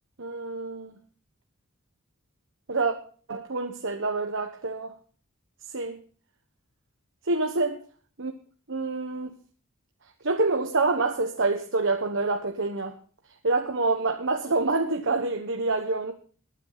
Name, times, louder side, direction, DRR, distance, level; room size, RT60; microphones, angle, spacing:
voice 1, 0.2-0.9 2.7-2.9 3.3-4.9 5.7-6.0 7.3-7.8 8.2-8.3 8.7-9.3 10.2-12.9 13.4-16.1, right 3 dB, 65° right, 5 dB, 1.2 m, -27 dB
20.5 x 9.0 x 4.0 m, 0.42 s
head